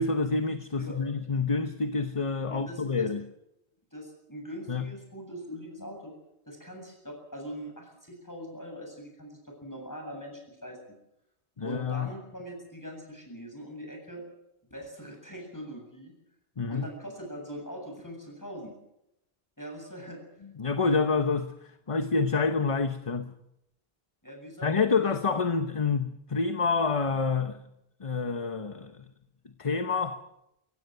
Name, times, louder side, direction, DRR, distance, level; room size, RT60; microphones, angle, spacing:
voice 1, 0.0-3.2 4.7-4.9 11.6-12.1 16.6-16.9 20.6-23.3 24.6-27.6 28.0-29.0 29.6-30.2, left 4 dB, 35° left, 0.9 m, -28 dB
voice 2, 2.5-3.1 3.9-6.1 6.5-10.8 11.6-14.2 14.7-16.1 16.7-18.7 19.6-20.2 24.2-24.9, equal, 15° left, 7.8 m, -42 dB
24.5 x 16.5 x 7.9 m
omnidirectional pair, 1.1 m